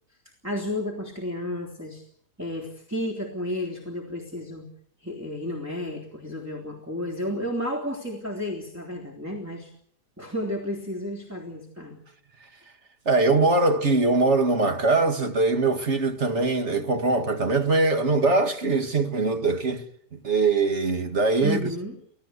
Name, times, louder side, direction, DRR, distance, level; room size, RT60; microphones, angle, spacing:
voice 1, 0.4-2.0 2.4-4.7 5.0-9.7 10.2-12.0 21.4-22.0, left 1 dB, 10° right, 3.4 m, -32 dB
voice 2, 13.1-19.8 20.1-21.7, right 3 dB, 45° right, 2.2 m, -22 dB
26.5 x 17.0 x 8.2 m
omnidirectional pair, 1.7 m